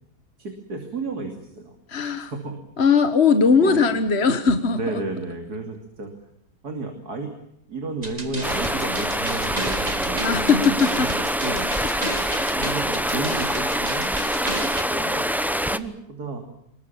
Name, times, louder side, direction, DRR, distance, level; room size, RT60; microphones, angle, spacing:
voice 1, 0.4-2.5 3.5-4.0 4.7-6.1 6.6-7.3 7.7-11.7 12.5-14.2 14.9-15.3 15.6-16.5, right 3 dB, 65° right, 4 dB, 3.4 m, -32 dB
voice 2, 1.9-2.3 2.8-4.8 10.2-11.1, left 5 dB, 40° left, 9 dB, 1.7 m, -19 dB
sound 1, 8.0-14.8, right 2 dB, 25° right, 2.9 m, -33 dB
Stream, 8.4-15.8, equal, ahead, 0.7 m, -25 dB
26.5 x 22.5 x 7.2 m, 0.73 s
omnidirectional pair, 1.8 m